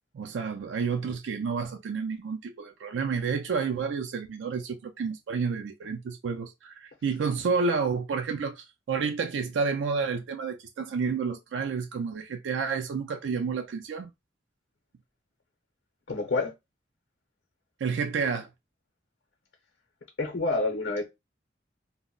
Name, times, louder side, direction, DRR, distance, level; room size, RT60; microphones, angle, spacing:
voice 1, 0.1-14.1 17.8-18.5, right 5 dB, 85° right, 0.4 m, -30 dB
voice 2, 16.1-16.5 20.2-21.0, left 3 dB, 80° left, 0.7 m, -27 dB
2.1 x 2.0 x 3.7 m
head